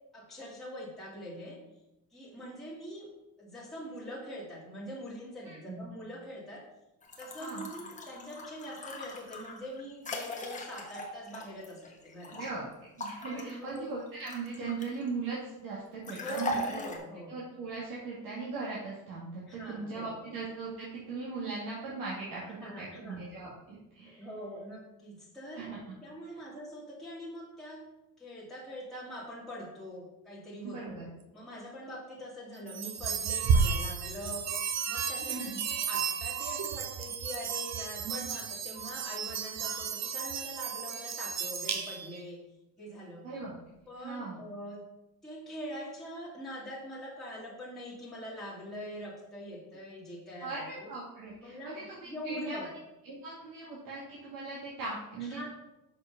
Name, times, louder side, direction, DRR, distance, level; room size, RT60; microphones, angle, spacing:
voice 1, 0.1-1.6 2.1-3.1 3.4-6.6 7.2-12.4 13.3-13.9 16.1-17.3 19.5-20.2 22.4-23.2 24.0-25.7 26.0-27.8 28.2-31.0 31.3-34.6 34.9-42.4 42.8-43.3 43.9-44.8 45.2-50.9 51.4-52.7 55.2-55.5, equal, ahead, -8 dB, 2.2 m, -43 dB
voice 2, 5.4-5.9 7.4-7.7 12.3-16.8 17.3-24.3 25.5-26.0 30.6-31.1 35.2-35.6 43.2-43.5 44.0-44.4 50.4-52.6 53.0-55.5, right 4 dB, 70° right, -6 dB, 2.3 m, -39 dB
sound 1, 7.0-12.5 13.0-15.1 16.0-17.0, left 1 dB, 20° left, 1.3 m, -40 dB
sound 2, 32.7-42.2, right 6 dB, 45° right, 0.9 m, -32 dB
6.4 x 5.0 x 5.3 m, 0.93 s
cardioid pair, 135°, 36 cm